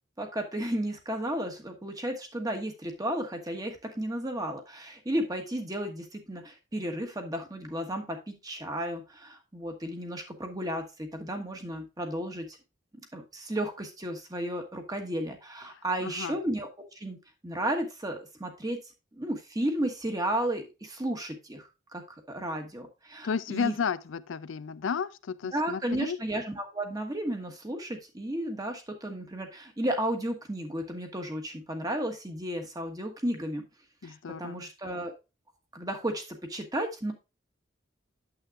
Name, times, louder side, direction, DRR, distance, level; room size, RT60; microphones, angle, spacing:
voice 1, 0.2-12.6 13.1-16.7 16.9-17.2 17.4-18.8 19.1-23.7 25.5-33.6 34.0-35.1 35.7-37.1, right 1 dB, 20° right, 1.3 m, -33 dB
voice 2, 15.7-16.3 23.2-26.2 34.0-34.7, left 6 dB, 80° left, 0.4 m, -33 dB
9.0 x 7.5 x 2.4 m
head